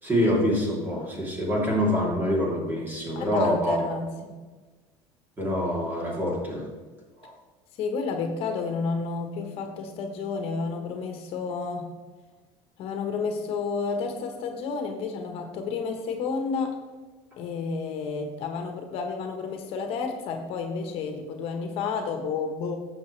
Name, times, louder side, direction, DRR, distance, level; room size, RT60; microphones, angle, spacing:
voice 1, 0.0-3.9 5.4-6.6 7.2-7.3, equal, 15° right, -3 dB, 3.1 m, -25 dB
voice 2, 3.1-4.4 7.8-11.9 12.8-16.8 17.4-22.8, left 5 dB, 60° left, 4 dB, 1.3 m, -31 dB
12.5 x 7.3 x 3.3 m, 1.3 s
cardioid pair, 130°, 11 cm